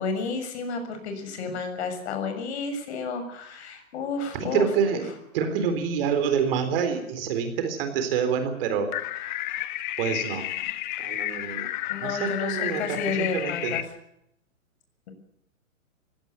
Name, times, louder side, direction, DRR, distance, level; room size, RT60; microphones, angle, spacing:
voice 1, 0.0-4.7 11.0-11.3 11.9-13.8, left 4 dB, 50° left, 7 dB, 6.9 m, -31 dB
voice 2, 4.3-8.9 10.0-10.5 11.0-11.7 12.0-13.8, right 6 dB, 40° right, 8 dB, 3.8 m, -27 dB
sound 1, 8.9-13.8, left 15 dB, 35° left, 1.2 m, -31 dB
18.5 x 17.0 x 9.5 m, 0.77 s
hypercardioid pair, 145°, 42 cm